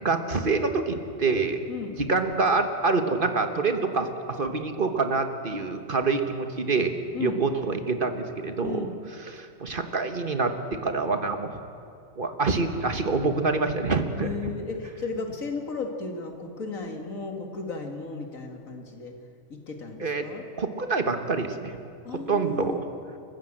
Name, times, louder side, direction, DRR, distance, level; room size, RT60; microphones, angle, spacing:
voice 1, 0.0-1.6 2.0-6.9 7.2-8.9 9.3-11.6 12.2-14.5 20.0-20.3 20.6-21.8 22.3-22.8, right 4 dB, 40° right, 7 dB, 1.4 m, -26 dB
voice 2, 8.6-8.9 14.2-19.1 19.5-20.5 22.0-22.8, left 4 dB, 90° left, 3 dB, 2.6 m, -35 dB
29.0 x 14.5 x 7.6 m, 2.5 s
omnidirectional pair, 1.4 m